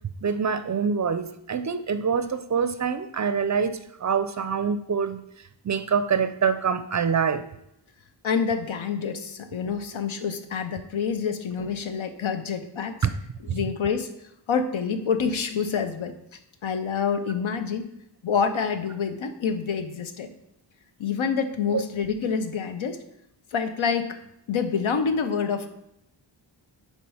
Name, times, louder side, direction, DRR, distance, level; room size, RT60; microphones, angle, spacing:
voice 1, 0.2-5.2 5.6-7.4 13.0-13.1 13.5-13.6 21.7-21.8, right 6 dB, 40° right, 11 dB, 0.4 m, -25 dB
voice 2, 8.2-13.1 13.4-14.1 14.5-16.1 16.6-17.9 18.2-20.3 21.0-23.0 23.5-24.2 24.5-25.7, left 6 dB, 85° left, 8 dB, 0.7 m, -27 dB
4.6 x 4.4 x 5.5 m, 0.78 s
wide cardioid pair, 80°, 46 cm